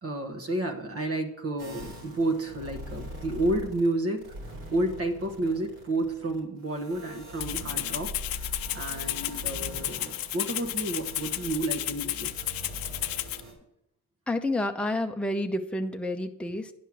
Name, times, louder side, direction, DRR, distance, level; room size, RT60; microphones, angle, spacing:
voice 1, 0.0-8.1 8.4-12.3, right 1 dB, 45° right, 3 dB, 1.3 m, -31 dB
sound 1, 1.6-3.9 4.2-13.5, equal, 80° right, 3.3 m, -42 dB
Rattle (instrument), 7.4-13.4, left 14 dB, 90° left, 0.5 m, -33 dB
voice 2, 14.3-16.7, left 1 dB, 5° left, 5 dB, 0.7 m, -29 dB
10.5 x 5.5 x 6.2 m, 0.79 s
cardioid pair, 75°, 33 cm